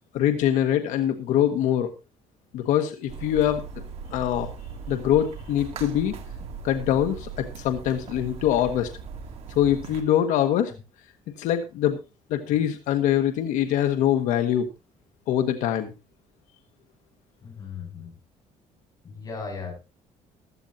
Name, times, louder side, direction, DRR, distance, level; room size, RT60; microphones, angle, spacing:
voice 1, 0.1-1.9 2.5-3.6 4.1-4.5 4.9-6.1 6.6-8.9 9.5-10.7 11.4-12.0 12.3-14.7 15.3-15.9, left 11 dB, 90° left, 7 dB, 1.4 m, -23 dB
sound 1, 3.1-10.0, right 5 dB, 55° right, 2.6 m, -39 dB
voice 2, 17.4-18.1 19.0-19.7, left 5 dB, 30° left, 1 dB, 7.7 m, -37 dB
15.5 x 13.5 x 2.8 m, 0.27 s
cardioid pair, 155°, 12 cm